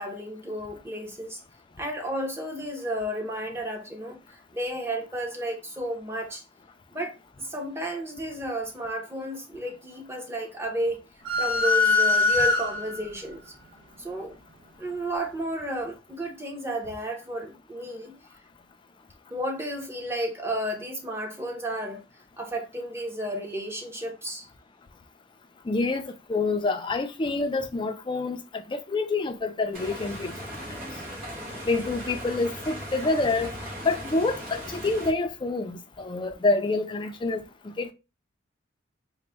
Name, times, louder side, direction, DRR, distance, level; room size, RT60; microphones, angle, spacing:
voice 1, 0.0-1.4 1.8-6.4 6.9-11.0 11.4-13.4 14.0-14.4 14.8-18.1 19.3-22.0 22.4-24.5, right 1 dB, 10° right, 0.7 m, -32 dB
sound 1, 11.2-13.1, left 3 dB, 75° right, 0.5 m, -22 dB
voice 2, 25.7-26.0 26.3-30.3 31.7-33.5 33.8-37.4 37.8-37.9, left 3 dB, 25° left, 0.3 m, -27 dB
sound 2, 29.7-35.1, equal, 50° right, 2.1 m, -38 dB
4.0 x 2.1 x 3.3 m
head